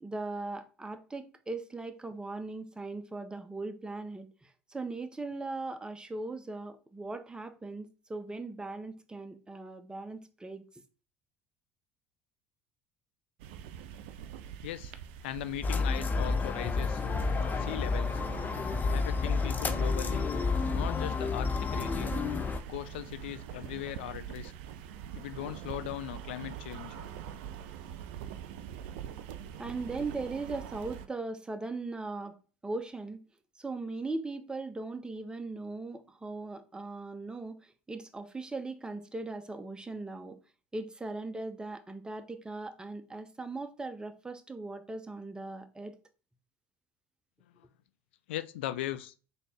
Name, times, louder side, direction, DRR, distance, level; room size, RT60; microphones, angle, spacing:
voice 1, 0.0-10.7 29.6-32.4 32.6-33.2 33.6-40.4 40.7-46.0, right 3 dB, 15° right, 0.7 m, -39 dB
sound 1, 13.4-31.1, right 9 dB, 75° right, 0.4 m, -44 dB
voice 2, 15.2-17.0 17.6-18.2 18.9-20.3 20.7-22.2 22.7-24.5 25.1-27.1 47.6-47.7 48.3-49.1, left 13 dB, 85° left, 0.3 m, -39 dB
sound 2, 15.6-22.6, left 4 dB, 30° left, 0.5 m, -30 dB
3.8 x 2.8 x 3.4 m
hypercardioid pair, 70°, 6 cm